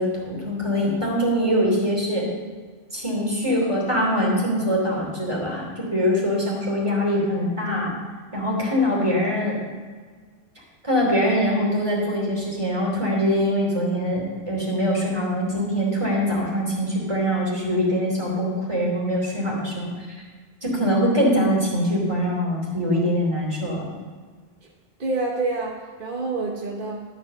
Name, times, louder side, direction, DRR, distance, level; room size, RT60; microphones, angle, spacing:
voice 1, 0.0-2.3 2.9-7.9 8.3-9.6 10.8-20.2 20.6-23.9, equal, 25° right, -4 dB, 3.1 m, -23 dB
voice 2, 25.0-27.0, right 3 dB, 50° right, -2 dB, 1.3 m, -27 dB
13.0 x 5.2 x 6.8 m, 1.5 s
omnidirectional pair, 1.2 m